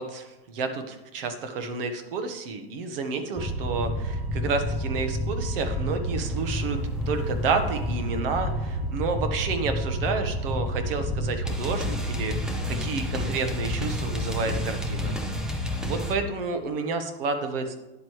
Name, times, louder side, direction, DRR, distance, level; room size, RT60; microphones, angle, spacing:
voice 1, 0.0-6.8 7.1-15.2 15.5-17.7, right 4 dB, 65° right, 7 dB, 1.4 m, -30 dB
sound 1, 3.4-16.1, equal, ahead, 0.3 m, -29 dB
10.0 x 7.7 x 3.2 m, 1.0 s
supercardioid pair, 160°, 30 cm